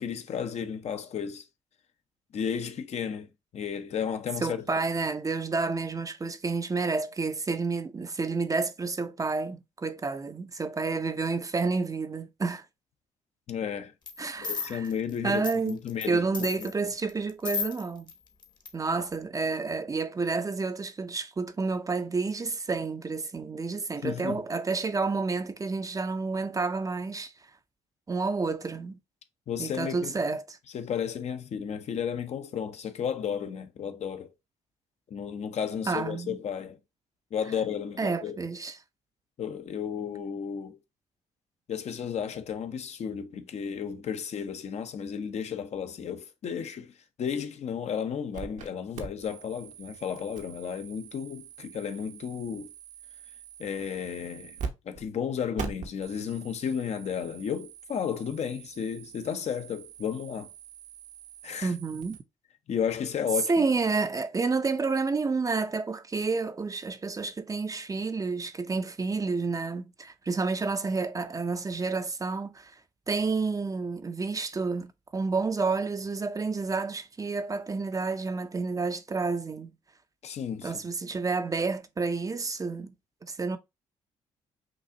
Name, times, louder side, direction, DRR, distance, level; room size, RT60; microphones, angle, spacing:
voice 1, 0.0-1.5 2.3-3.3 3.5-4.8 13.5-13.9 14.4-16.7 24.0-24.4 29.5-30.1 30.7-34.3 35.1-36.8 37.3-38.4 39.4-40.8 41.7-52.7 53.6-54.6 54.8-60.5 61.4-61.7 62.7-63.5 80.2-80.7, left 7 dB, 55° left, 0.7 m, -33 dB
voice 2, 4.4-12.6 14.2-14.9 15.2-15.8 16.1-18.1 18.7-27.3 28.1-29.0 29.6-30.6 35.9-36.4 38.0-38.8 61.6-62.2 63.5-72.7 73.1-79.7 80.6-82.9 83.2-83.6, right 4 dB, 25° right, 0.5 m, -30 dB
sound 1, 14.1-14.2 14.4-16.1 16.3-18.1 18.4-18.7 19.1-19.2, left 5 dB, 30° left, 1.0 m, -34 dB
sound 2, 48.3-48.7 48.9-54.7 54.9-55.1 55.6-62.2, right 6 dB, 65° right, 0.9 m, -43 dB
6.0 x 2.4 x 2.7 m
supercardioid pair, 65°, 13 cm